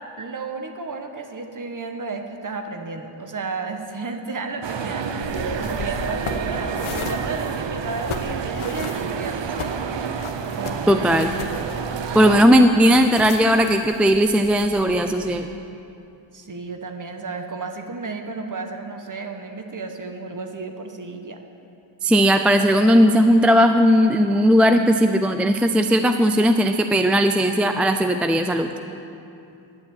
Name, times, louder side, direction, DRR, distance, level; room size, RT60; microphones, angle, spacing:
voice 1, 0.2-5.1 5.6-6.7 7.0-9.7 10.5-11.1 16.3-21.4, right 4 dB, 40° right, 5 dB, 1.3 m, -33 dB
sound 1, 4.6-12.5, right 6 dB, 60° right, 0.8 m, -29 dB
sound 2, 5.2-15.0, left 5 dB, 80° left, 1.0 m, -36 dB
voice 2, 10.9-11.3 12.1-15.5 22.0-28.7, equal, 5° right, 6 dB, 0.4 m, -17 dB
10.5 x 7.7 x 8.7 m, 2.7 s
cardioid pair, 80°, 49 cm